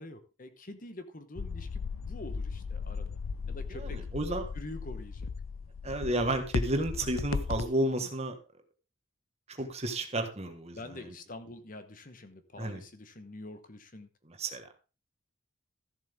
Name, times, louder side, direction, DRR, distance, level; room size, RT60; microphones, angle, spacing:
voice 1, 0.0-3.2 3.5-4.0 4.5-5.3 10.7-14.1, left 1 dB, 40° left, 10 dB, 1.1 m, -46 dB
sound 1, 1.4-7.6, left 5 dB, 90° left, 0.5 m, -36 dB
voice 2, 3.7-4.5 5.8-8.4 9.5-10.8 11.0-11.1 12.6-12.8 14.3-14.7, right 1 dB, 30° right, 6 dB, 1.5 m, -32 dB
14.0 x 7.4 x 3.6 m, 0.32 s
head